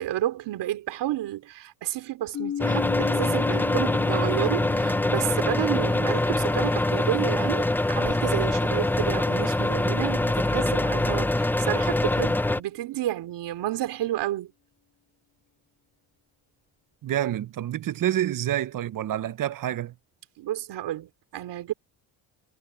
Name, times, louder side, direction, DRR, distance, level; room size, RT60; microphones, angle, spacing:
voice 1, 0.0-14.5 20.4-21.7, right 13 dB, 80° right, 3.3 m, -31 dB
sound 1, 2.3-10.1, left 9 dB, 45° left, 1.9 m, -37 dB
sound 2, 2.6-12.6, left 2 dB, 5° left, 0.4 m, -24 dB
Toilet flush, 5.9-11.0 11.4-11.8 16.3-16.4 16.7-17.4, right 3 dB, 20° right, 7.7 m, -54 dB
voice 2, 17.0-19.9, right 12 dB, 50° right, 0.8 m, -28 dB
cardioid pair, 100°, 41 cm